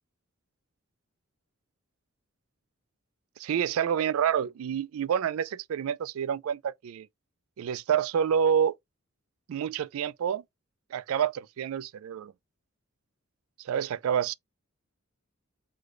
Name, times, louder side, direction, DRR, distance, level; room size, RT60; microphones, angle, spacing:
voice 1, 3.4-7.1 7.6-8.8 9.5-10.4 10.9-12.3 13.6-14.3, right 8 dB, 80° right, 0.3 m, -28 dB
4.8 x 2.2 x 3.8 m
head